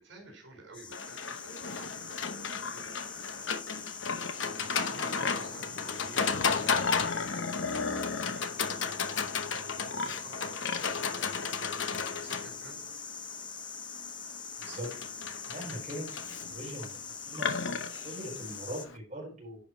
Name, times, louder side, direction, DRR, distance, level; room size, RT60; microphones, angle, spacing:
voice 1, 0.0-2.3 2.7-3.4 4.6-6.3 6.6-9.1 9.7-11.8 12.2-12.9, right 2 dB, 75° right, 0 dB, 4.5 m, -51 dB
sound 1, 0.7-18.9, left 6 dB, 25° left, 0.9 m, -43 dB
Livestock farm animals working animals, 0.9-19.0, left 5 dB, 75° left, 0.9 m, -34 dB
voice 2, 14.6-14.9 15.5-16.2 16.5-16.9 17.3-17.5 17.9-19.6, right 1 dB, 35° right, -4 dB, 4.3 m, -40 dB
10.5 x 5.1 x 4.4 m, 0.39 s
head